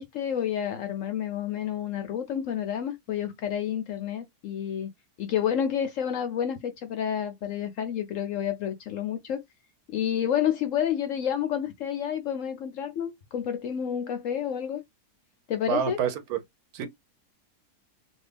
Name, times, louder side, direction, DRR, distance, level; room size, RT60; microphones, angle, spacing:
voice 1, 0.0-4.9 5.2-9.4 9.9-14.8 15.5-16.0, left 9 dB, 65° left, 0.8 m, -29 dB
voice 2, 15.7-16.4 16.7-16.9, right 8 dB, 70° right, 1.1 m, -27 dB
2.8 x 2.6 x 3.3 m
omnidirectional pair, 1.7 m